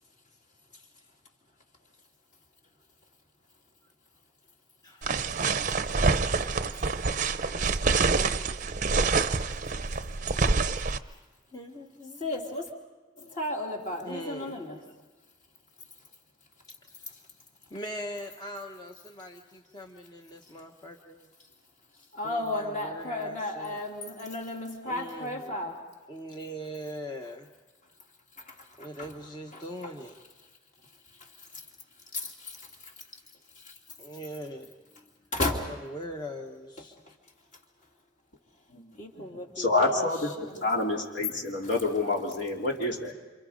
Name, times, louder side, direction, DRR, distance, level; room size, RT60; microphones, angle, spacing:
voice 1, 4.8-5.3 10.9-11.2 11.5-12.3 14.0-14.6 16.8-16.9 17.7-21.3 22.2-23.8 24.8-25.5 26.1-27.5 28.8-30.1 34.0-35.1 35.5-37.0 39.2-39.3, equal, 20° left, 1.0 m, -42 dB
sound 1, 5.0-11.0, right 4 dB, 40° right, 0.7 m, -26 dB
voice 2, 12.2-12.7 13.2-14.8 22.1-25.9 28.4-29.1 29.5-29.9 31.2-31.6 32.1-33.0 33.5-33.8 35.3-35.7 36.8-36.9 39.0-40.1 40.4-40.9, left 1 dB, 40° left, 2.9 m, -35 dB
voice 3, 38.7-39.3 39.6-40.3 40.6-43.1, left 2 dB, 65° left, 3.2 m, -28 dB
28.5 x 27.5 x 5.1 m
head